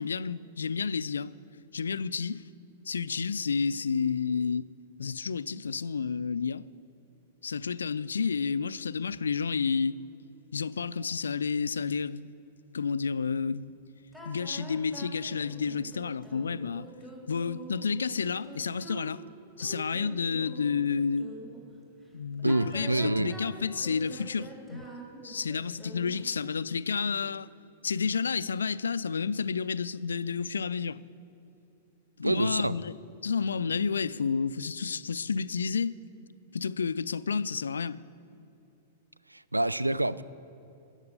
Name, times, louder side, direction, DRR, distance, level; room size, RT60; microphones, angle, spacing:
voice 1, 0.0-1.3 1.7-2.4 2.9-4.7 5.0-6.6 7.4-10.0 10.5-12.3 12.7-13.7 14.3-16.9 17.3-19.2 19.6-21.3 22.1-24.9 25.2-27.5 27.8-31.0 32.2-32.9 33.2-36.0 36.5-38.0, left 5 dB, 75° left, 0.3 m, -30 dB
sound 1, 14.1-21.6 22.3-26.4, right 2 dB, 15° right, 2.9 m, -45 dB
voice 2, 22.4-23.3 32.2-32.8 39.3-40.2, right 1 dB, 90° right, 0.3 m, -27 dB
13.5 x 8.2 x 6.7 m
figure-of-eight pair, 100°, 0 cm